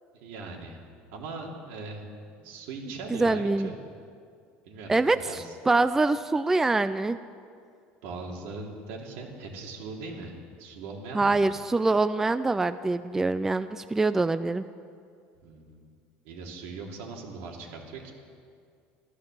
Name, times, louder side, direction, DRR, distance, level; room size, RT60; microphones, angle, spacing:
voice 1, 0.1-0.8 1.1-2.0 2.4-3.8 4.7-5.6 8.0-11.5 15.4-15.9 16.2-18.1, right 3 dB, 75° right, 0 dB, 2.7 m, -40 dB
voice 2, 3.1-3.7 4.9-7.2 11.1-14.6, right 3 dB, 10° right, 12 dB, 0.3 m, -24 dB
14.0 x 12.0 x 7.3 m, 2.3 s
cardioid pair, 135°, 4 cm